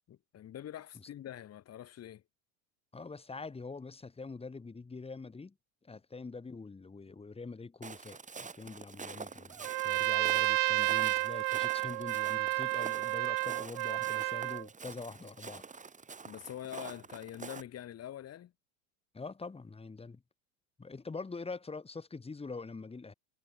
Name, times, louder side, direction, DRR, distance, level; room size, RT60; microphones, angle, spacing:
voice 1, 0.1-2.2 16.2-18.5, left 11 dB, 40° left, 5.7 m, -45 dB
voice 2, 2.9-5.5 5.8-8.2 8.5-15.6 19.1-20.2 20.8-23.1, left 4 dB, 15° left, 3.6 m, -44 dB
Walk footsteps, 7.8-17.6, right 5 dB, 20° right, 3.9 m, -47 dB
Trumpet, 9.6-14.6, right 29 dB, 65° right, 1.4 m, -31 dB
hypercardioid pair, 90°, 38 cm